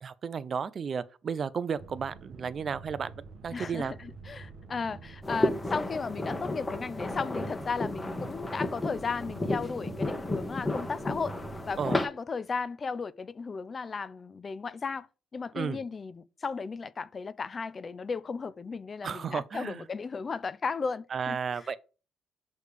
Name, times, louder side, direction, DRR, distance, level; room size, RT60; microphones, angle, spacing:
voice 1, 0.0-3.1 3.4-3.9 11.8-12.0 15.5-15.8 19.0-19.8 21.1-21.8, right 6 dB, 50° right, 0.5 m, -33 dB
sound 1, 1.8-11.9, right 4 dB, 65° right, 0.9 m, -47 dB
voice 2, 3.5-11.4 11.7-15.1 15.3-21.8, left 5 dB, 35° left, 0.4 m, -35 dB
sound 2, 5.2-12.1, left 2 dB, 15° left, 1.1 m, -32 dB
6.5 x 3.2 x 5.1 m
cardioid pair, 90°, 0 cm